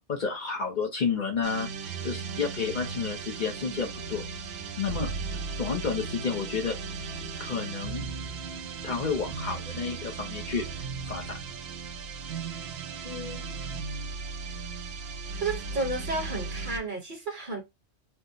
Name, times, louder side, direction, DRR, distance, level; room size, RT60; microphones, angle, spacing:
voice 1, 0.1-4.2 4.8-5.1 5.6-6.8 7.4-8.1 8.8-10.7 11.1-11.3, left 5 dB, 50° left, 0.7 m, -31 dB
sound 1, 1.4-16.9, right 5 dB, 70° right, 0.9 m, -36 dB
voice 2, 13.0-13.4 15.4-17.6, right 3 dB, 50° right, 1.2 m, -32 dB
4.3 x 2.0 x 2.6 m
omnidirectional pair, 1.1 m